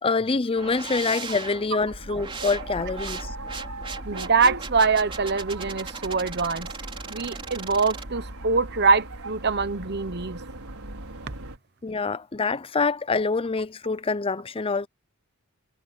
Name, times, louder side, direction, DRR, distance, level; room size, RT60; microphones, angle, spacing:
voice 1, 0.0-3.3 11.8-14.9, left 4 dB, 25° left, 0.5 m, -26 dB
sound 1, 0.6-8.1, right 4 dB, 25° right, 3.8 m, -39 dB
sound 2, 1.8-11.6, right 2 dB, 85° right, 4.6 m, -39 dB
voice 2, 4.0-6.7 7.1-10.4, right 4 dB, 50° right, 1.1 m, -24 dB
head